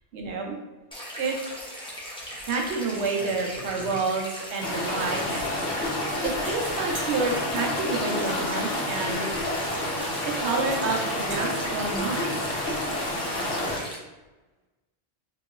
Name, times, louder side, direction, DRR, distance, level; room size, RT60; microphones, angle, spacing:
voice 1, 0.1-0.6 1.2-1.4 2.5-5.4 6.2-9.3 9.6-9.8 10.4-12.5, right 4 dB, 80° right, 0 dB, 0.9 m, -29 dB
sound 1, 0.9-14.0, equal, 10° left, 0.3 m, -39 dB
sound 2, 3.1-4.4 6.4-6.5 6.9-7.2 9.0-9.1 10.0-10.1 10.7-10.8 11.1-11.5, right 1 dB, 65° right, 1.2 m, -40 dB
sound 3, 4.6-13.8, left 1 dB, 70° left, 1.1 m, -29 dB
2.9 x 2.8 x 2.3 m, 1.1 s
omnidirectional pair, 1.1 m